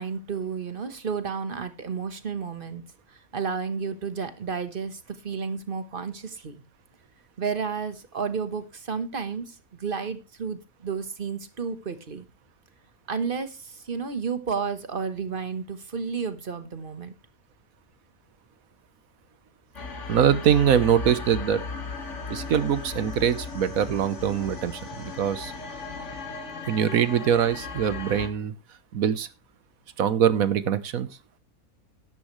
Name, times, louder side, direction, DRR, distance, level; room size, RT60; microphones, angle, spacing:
voice 1, 0.0-2.8 3.3-6.6 7.4-12.2 13.1-17.1, right 5 dB, 40° right, 11 dB, 1.4 m, -32 dB
sound 1, 19.7-28.3, left 4 dB, 55° left, 2.1 m, -36 dB
voice 2, 20.1-21.6 22.3-25.5 26.7-28.5 28.9-29.3 30.0-31.1, right 8 dB, 75° right, 14 dB, 1.4 m, -23 dB
13.5 x 10.0 x 3.2 m, 0.26 s
omnidirectional pair, 1.5 m